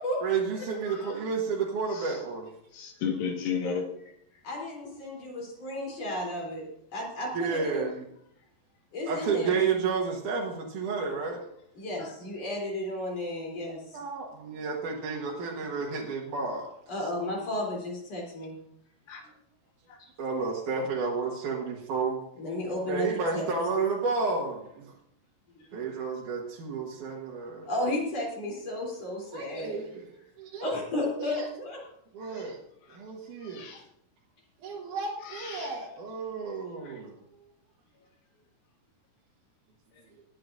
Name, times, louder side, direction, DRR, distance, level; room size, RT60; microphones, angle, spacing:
voice 1, 0.2-2.5 7.3-8.1 9.1-11.4 13.9-16.7 20.2-22.2 22.9-24.9 25.7-27.7 29.3-30.6 31.2-31.5 32.1-32.6 32.9-33.7 34.6-37.2, right 5 dB, 60° right, -3 dB, 2.6 m, -31 dB
voice 2, 2.7-3.8 12.0-12.1 19.1-19.2 32.3-32.4 33.5-33.8 35.3-35.7 36.8-36.9, left 6 dB, 65° left, 2 dB, 3.2 m, -32 dB
voice 3, 4.4-6.6 6.9-7.9 8.9-9.6 11.8-14.0 16.9-18.6 22.4-23.1 23.3-23.4 25.6-25.7 27.7-29.8 30.6-31.8, left 1 dB, 40° left, -1 dB, 4.2 m, -33 dB
19.5 x 10.0 x 2.6 m, 0.73 s
omnidirectional pair, 4.6 m